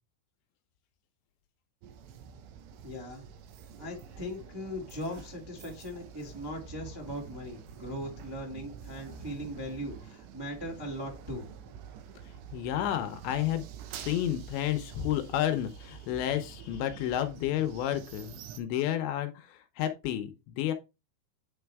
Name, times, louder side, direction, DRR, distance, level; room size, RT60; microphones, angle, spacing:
sound 1, 1.8-18.6, right 7 dB, 75° right, 3.0 m, -47 dB
voice 1, 2.8-3.3 3.8-11.4, equal, 25° right, 0.5 m, -39 dB
voice 2, 12.5-13.7 14.0-20.7, left 11 dB, 80° left, 2.9 m, -31 dB
9.5 x 4.4 x 3.5 m
omnidirectional pair, 5.4 m